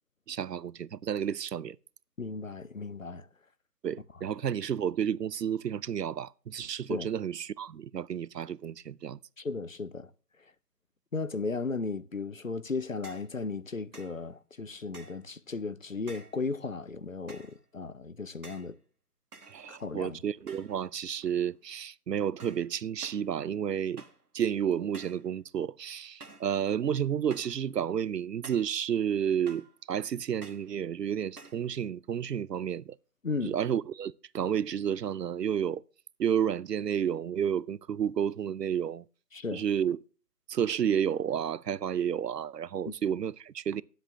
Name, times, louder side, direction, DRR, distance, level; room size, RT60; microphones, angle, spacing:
voice 1, 0.3-1.8 3.8-9.2 19.5-24.0 24.3-33.0 33.4-35.8 36.2-39.0 39.5-40.0 40.5-43.8, right 8 dB, 85° right, 0.6 m, -31 dB
voice 2, 2.2-3.3 6.9-7.1 9.4-10.1 11.1-18.8 19.7-20.2 33.2-33.6 39.3-39.6 42.9-43.0, left 4 dB, 55° left, 0.6 m, -35 dB
sound 1, 13.0-13.3 13.9-14.2 14.9-15.3 16.1-16.4 17.3-17.6 18.4-18.7 19.3-20.0 20.5-20.9 21.2-21.6 22.4-22.7 23.0-23.3 24.0-24.3 24.9-25.3 26.2-26.5 27.3-27.6 28.4-28.8 29.5-29.8 30.4-30.7 31.4-31.7, right 3 dB, 65° right, 1.4 m, -50 dB
9.0 x 7.8 x 6.1 m
figure-of-eight pair, 180°, 48 cm